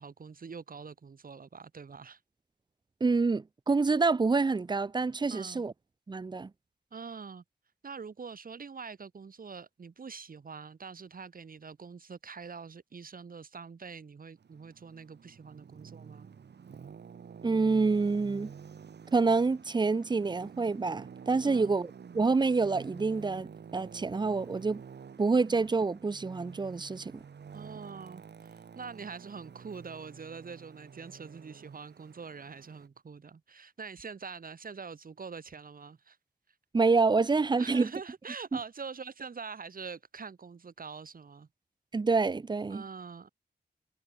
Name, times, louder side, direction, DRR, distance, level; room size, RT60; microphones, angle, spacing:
voice 1, 0.0-2.2 5.3-5.6 6.9-7.4 7.8-16.3 21.4-21.7 27.5-36.2 37.6-41.5 42.7-43.3, right 5 dB, 55° right, 7.1 m, -44 dB
voice 2, 3.0-5.7 6.1-6.5 17.4-18.5 19.1-24.8 25.2-27.2 36.7-37.9 41.9-42.8, right 4 dB, 25° right, 0.6 m, -27 dB
Traffic noise roadway noise, 14.4-32.9, right 6 dB, 80° right, 6.7 m, -49 dB
wide cardioid pair, 130°, 17 cm